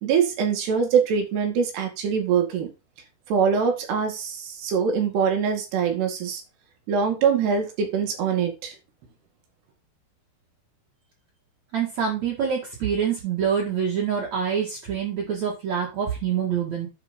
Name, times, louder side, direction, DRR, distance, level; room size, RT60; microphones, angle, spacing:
voice 1, 0.0-2.7 3.3-6.4 6.9-8.8, right 6 dB, 80° right, 4 dB, 4.3 m, -23 dB
voice 2, 11.7-16.9, right 7 dB, 50° right, -2 dB, 2.7 m, -26 dB
10.0 x 5.1 x 5.2 m, 0.27 s
omnidirectional pair, 4.7 m